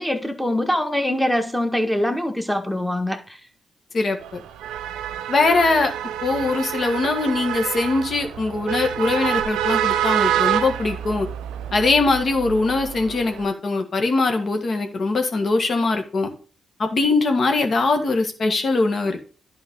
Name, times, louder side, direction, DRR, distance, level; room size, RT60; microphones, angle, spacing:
voice 1, 0.0-3.4, left 1 dB, 5° left, 1.6 m, -23 dB
voice 2, 3.9-4.4 5.3-5.9 6.2-11.3 11.7-16.3 16.8-19.2, left 3 dB, 55° left, 1.7 m, -21 dB
sound 1, 4.2-13.5, right 10 dB, 85° right, 0.6 m, -27 dB
11.0 x 4.7 x 3.7 m
supercardioid pair, 45°, 0 cm